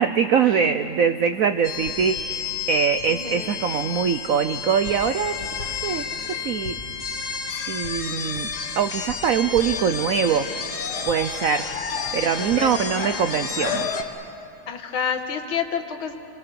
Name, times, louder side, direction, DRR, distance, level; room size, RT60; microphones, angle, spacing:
voice 1, 0.0-6.8 7.6-8.5 8.8-10.5 11.0-11.7 12.1-14.1, right 7 dB, 90° right, 9 dB, 0.7 m, -23 dB
sound 1, 1.6-14.0, left 6 dB, 55° left, 1.8 m, -30 dB
voice 2, 3.1-3.5 12.2-12.7 14.7-16.1, left 7 dB, 75° left, 6 dB, 2.2 m, -29 dB
27.0 x 22.0 x 6.9 m, 2.7 s
omnidirectional pair, 2.3 m